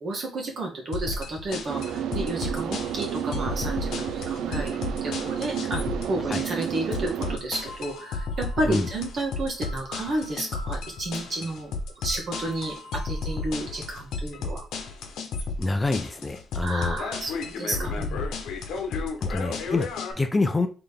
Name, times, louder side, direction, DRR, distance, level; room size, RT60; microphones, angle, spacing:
voice 1, 0.0-14.6 16.6-18.3, right 2 dB, 50° right, 0 dB, 1.7 m, -32 dB
sound 1, 0.9-20.1, left 3 dB, 80° left, 0.9 m, -33 dB
sound 2, 1.7-7.4, right 9 dB, 75° right, 0.4 m, -31 dB
voice 2, 15.6-17.0 19.2-20.7, left 3 dB, 20° left, 6 dB, 0.5 m, -26 dB
4.1 x 3.3 x 3.5 m, 0.35 s
cardioid pair, 90°, 0 cm